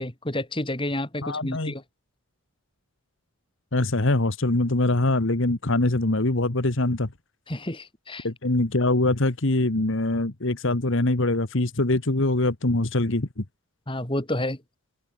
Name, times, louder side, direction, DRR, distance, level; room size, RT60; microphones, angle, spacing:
voice 1, 0.0-1.8 7.5-8.3 13.9-14.6, left 1 dB, 25° left, 3.1 m, -30 dB
voice 2, 1.2-1.7 3.7-7.1 8.2-13.4, left 2 dB, 60° left, 1.6 m, -23 dB
head